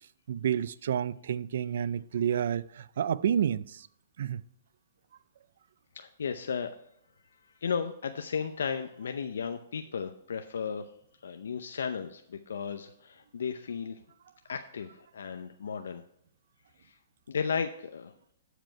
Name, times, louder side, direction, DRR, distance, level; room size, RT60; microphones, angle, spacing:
voice 1, 0.3-3.9 4.2-4.4, right 9 dB, 65° right, 0.4 m, -29 dB
voice 2, 5.9-6.7 7.4-10.9 11.2-14.0 14.5-16.0 16.8-17.0 17.3-18.1, left 6 dB, 85° left, 0.6 m, -34 dB
12.5 x 5.1 x 4.5 m
hypercardioid pair, 145°, 0 cm